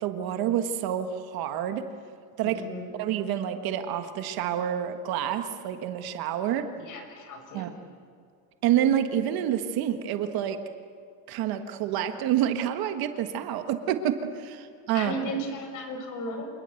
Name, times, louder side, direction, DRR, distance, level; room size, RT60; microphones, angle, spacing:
voice 1, 0.0-1.9 2.4-2.6 3.0-6.7 7.5-7.7 8.6-10.6 11.3-15.1, right 10 dB, 60° right, 8 dB, 1.6 m, -28 dB
voice 2, 2.4-2.9 6.9-7.8 14.9-16.5, equal, 45° left, 5 dB, 5.5 m, -35 dB
27.5 x 20.5 x 7.9 m, 2.2 s
cardioid pair, 155°, 42 cm